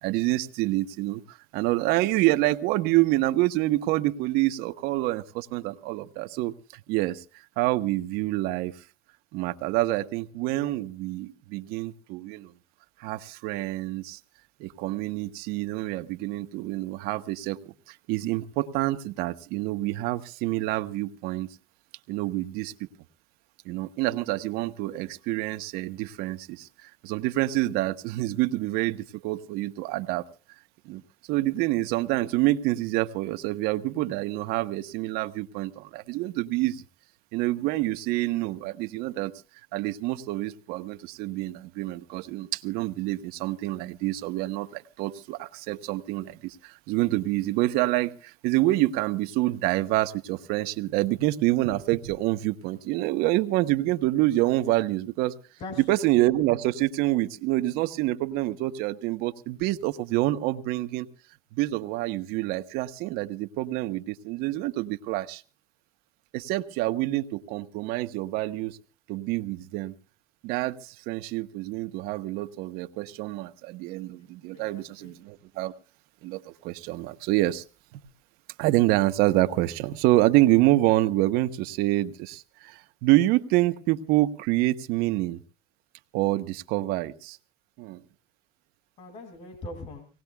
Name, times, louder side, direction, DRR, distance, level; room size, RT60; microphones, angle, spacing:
voice 1, 0.0-6.5 6.9-7.2 7.6-8.7 9.3-12.5 13.0-14.2 14.6-21.5 22.1-22.7 23.6-30.2 30.8-31.0 31.3-36.8 37.3-39.3 39.7-55.4 55.9-61.1 61.5-65.4 66.3-68.8 69.1-69.9 70.4-75.7 76.2-77.6 77.9-78.0 78.6-85.4 86.1-87.4 87.8-88.0, right 17 dB, 80° right, 10 dB, 1.0 m, -27 dB
voice 2, 74.2-75.2 89.0-90.1, left 2 dB, 45° left, 6 dB, 2.4 m, -42 dB
25.5 x 18.5 x 2.3 m, 0.35 s
cardioid pair, 170°, 16 cm